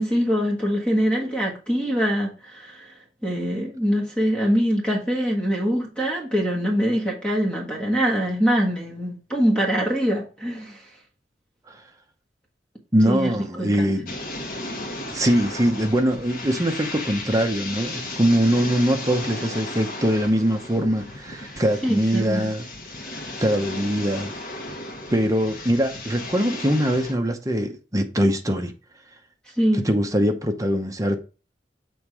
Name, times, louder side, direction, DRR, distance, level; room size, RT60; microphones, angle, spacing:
voice 1, 0.0-2.9 3.2-10.8 13.1-13.3 13.6-13.9 21.5-22.5 23.1-23.3 29.6-29.9, equal, 5° left, 1.6 m, -23 dB
voice 2, 12.9-14.1 15.1-22.7 23.4-24.3 25.1-28.7 29.8-31.2, equal, 20° right, 0.8 m, -22 dB
sound 1, 14.1-27.1, left 2 dB, 50° left, 1.4 m, -35 dB
7.2 x 3.6 x 4.7 m
head